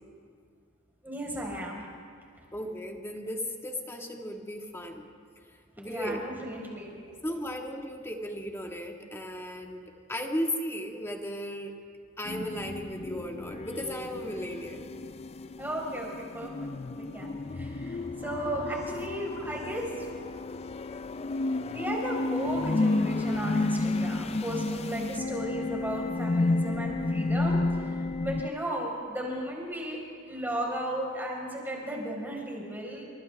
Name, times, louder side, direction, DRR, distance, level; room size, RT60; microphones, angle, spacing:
voice 1, 1.0-1.8 5.8-7.0 15.6-16.1 16.3-16.5 17.0-20.1 21.5-27.6 28.2-30.0 30.2-33.0, right 1 dB, 10° right, -2 dB, 4.7 m, -35 dB
voice 2, 2.5-5.1 5.8-6.3 7.2-9.8 10.1-11.8 12.2-14.9, equal, 10° left, 2 dB, 1.8 m, -35 dB
sound 1, 12.3-28.5, left 2 dB, 30° left, 0.4 m, -31 dB
29.5 x 26.0 x 3.5 m, 2.3 s
head